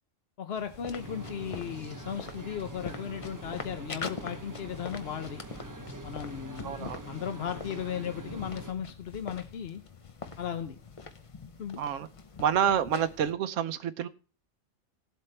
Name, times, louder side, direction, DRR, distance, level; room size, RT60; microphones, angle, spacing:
voice 1, 0.4-5.4 6.0-9.8 10.4-10.8 11.6-11.8, left 8 dB, 55° left, 0.9 m, -36 dB
sound 1, 0.6-13.3, left 4 dB, 35° left, 0.5 m, -44 dB
sound 2, 1.0-8.7, right 2 dB, 20° right, 0.5 m, -44 dB
voice 2, 6.6-7.1 11.8-12.1 12.4-14.1, right 9 dB, 75° right, 1.0 m, -28 dB
16.5 x 7.7 x 3.3 m
omnidirectional pair, 1.3 m